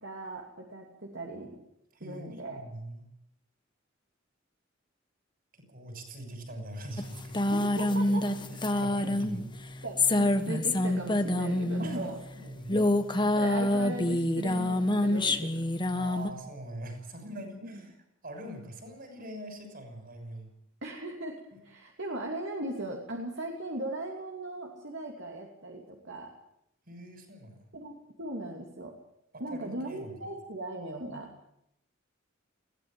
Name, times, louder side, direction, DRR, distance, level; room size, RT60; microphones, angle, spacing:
voice 1, 0.0-1.6 2.0-2.7 7.5-8.3 8.7-8.9 9.8-12.2 12.7-12.8 13.3-15.7 17.2-17.8 20.8-26.3 27.7-28.9 29.4-31.3, right 1 dB, 65° right, 1 dB, 2.9 m, -38 dB
voice 2, 1.9-3.1 5.5-7.4 8.5-9.4 11.8-12.8 15.9-17.9 18.2-20.5 21.5-21.6 26.9-27.6 29.3-30.3, right 1 dB, 50° right, 6 dB, 6.3 m, -43 dB
sound 1, 7.0-12.1 12.6-16.3, left 1 dB, 25° left, 1.4 m, -27 dB
21.5 x 17.0 x 9.0 m, 0.77 s
head